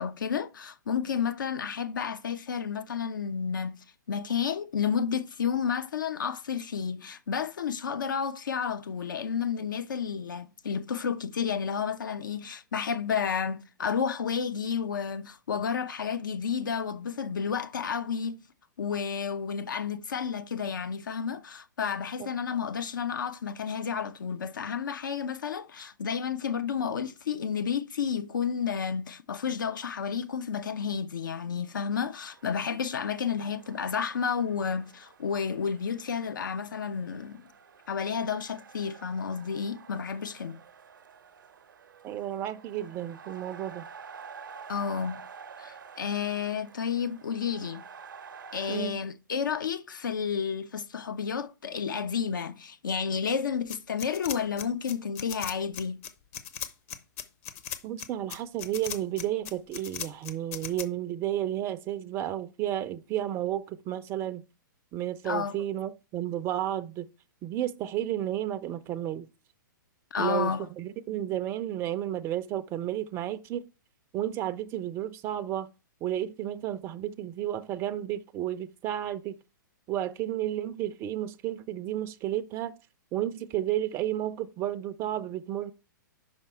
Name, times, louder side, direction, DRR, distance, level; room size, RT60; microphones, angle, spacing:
voice 1, 0.0-3.8 4.1-18.4 18.8-37.4 37.9-40.6 44.7-45.2 45.6-47.9 48.5-56.0 65.2-65.6 70.1-70.7, left 7 dB, 70° left, 0.5 m, -31 dB
sound 1, 32.3-48.8, right 6 dB, 70° right, 0.6 m, -50 dB
voice 2, 42.0-43.8 48.7-49.0 57.8-64.4 64.9-67.1 67.4-69.3 70.2-73.6 74.1-75.7 76.0-79.3 79.9-82.7 83.1-85.7, right 12 dB, 25° right, 0.4 m, -32 dB
sound 2, 53.7-60.8, left 9 dB, 45° left, 0.8 m, -38 dB
5.7 x 5.3 x 4.4 m
figure-of-eight pair, 115°, 11 cm